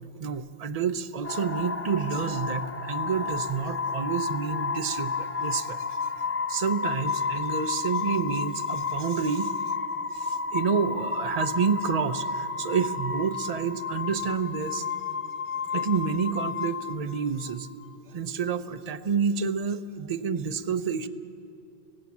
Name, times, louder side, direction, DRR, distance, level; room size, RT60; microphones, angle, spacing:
voice 1, 0.0-6.0 6.5-9.6 10.1-14.9 15.7-17.7 18.1-21.1, right 6 dB, 40° right, 9 dB, 0.7 m, -29 dB
sound 1, 1.2-17.9, left 4 dB, 15° left, 0.5 m, -32 dB
26.5 x 16.0 x 7.2 m, 2.8 s
omnidirectional pair, 1.2 m